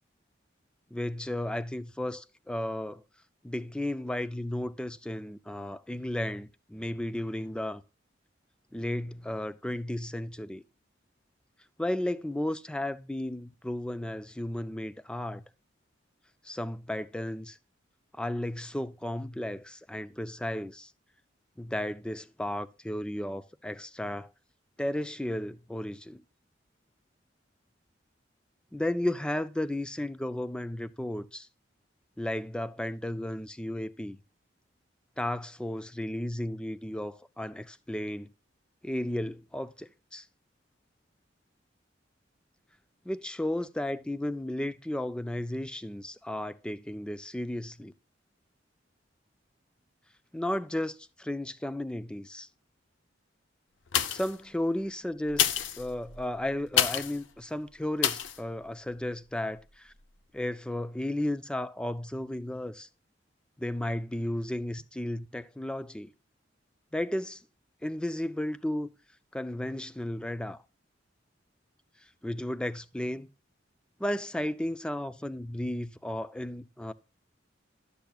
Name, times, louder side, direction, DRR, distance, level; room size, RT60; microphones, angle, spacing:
voice 1, 0.9-3.0 3.4-7.8 8.7-10.6 11.8-15.4 16.4-17.6 18.1-20.9 21.6-24.3 24.8-26.2 28.7-31.5 32.2-34.2 35.2-38.3 38.8-40.3 43.1-47.9 50.3-52.5 54.1-55.5 55.8-59.9 60.3-62.9 63.6-66.1 66.9-67.4 67.8-68.9 69.3-70.6 72.2-73.3 74.0-76.9, left 1 dB, 5° left, 0.4 m, -34 dB
sound 1, 53.9-54.4 55.3-57.2 58.0-58.4 58.9-59.0, left 9 dB, 75° left, 0.6 m, -28 dB
12.0 x 6.8 x 2.3 m
head